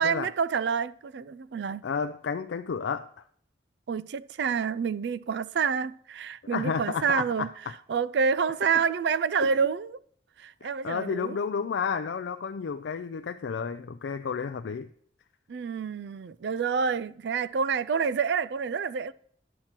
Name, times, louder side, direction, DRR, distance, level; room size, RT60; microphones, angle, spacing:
voice 1, 0.0-1.8 3.9-7.5 7.9-10.0 10.4-11.4 15.5-19.1, right 6 dB, 70° right, 0.4 m, -28 dB
voice 2, 1.8-3.1 6.5-7.5 9.4-9.5 10.6-14.9, left 6 dB, 80° left, 0.4 m, -31 dB
10.0 x 7.3 x 4.5 m
head